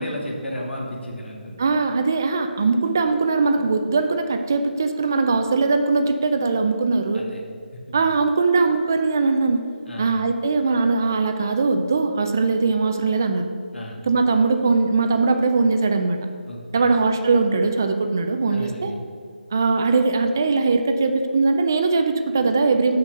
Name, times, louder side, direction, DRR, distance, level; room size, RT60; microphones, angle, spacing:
voice 1, 0.0-1.6 7.1-7.4 9.9-10.1 13.7-14.0 16.5-17.0 18.5-19.0, equal, 90° left, -1 dB, 2.4 m, -33 dB
voice 2, 1.6-7.3 7.9-9.6 10.0-13.5 14.0-16.2 16.7-18.9 19.5-23.0, right 4 dB, 20° right, 7 dB, 0.3 m, -20 dB
7.0 x 6.2 x 6.4 m, 2.3 s
figure-of-eight pair, 175°, 6 cm